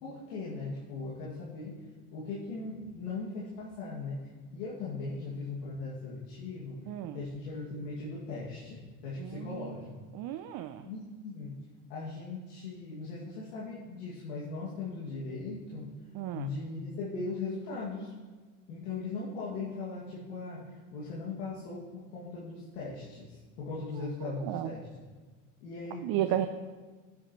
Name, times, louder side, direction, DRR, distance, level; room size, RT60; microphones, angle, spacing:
voice 1, 0.0-1.8 2.1-6.8 7.1-9.9 10.8-11.6 11.9-15.9 16.3-18.1 18.7-20.6 20.9-24.9 25.6-26.5, left 3 dB, 85° left, -7 dB, 2.5 m, -39 dB
voice 2, 6.9-7.2 9.2-9.8 10.1-10.9 16.1-16.5 23.9-24.7 26.0-26.5, right 13 dB, 50° right, 8 dB, 0.7 m, -34 dB
16.5 x 8.6 x 3.2 m, 1.4 s
supercardioid pair, 90°, 46 cm